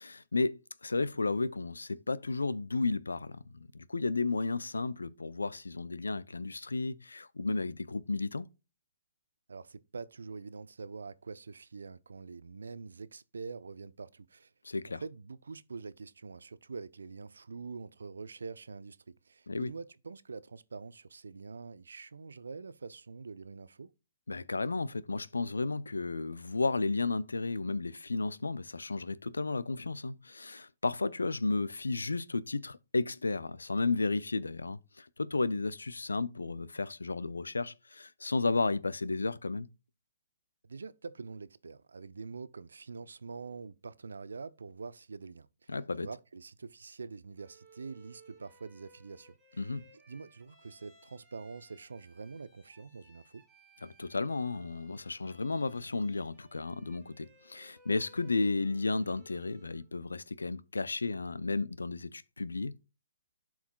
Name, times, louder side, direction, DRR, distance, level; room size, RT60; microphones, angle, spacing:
voice 1, 0.0-8.5 14.6-15.0 19.5-19.7 24.3-39.7 45.7-46.1 49.6-49.9 53.8-62.7, left 3 dB, 80° left, 0.5 m, -33 dB
voice 2, 9.5-14.5 14.8-19.0 19.2-23.9 40.6-49.8 50.1-53.4, right 4 dB, 75° right, 0.6 m, -45 dB
Bowed string instrument, 47.4-59.9, right 2 dB, 5° right, 2.5 m, -62 dB
11.5 x 4.8 x 2.3 m
figure-of-eight pair, 130°, 0 cm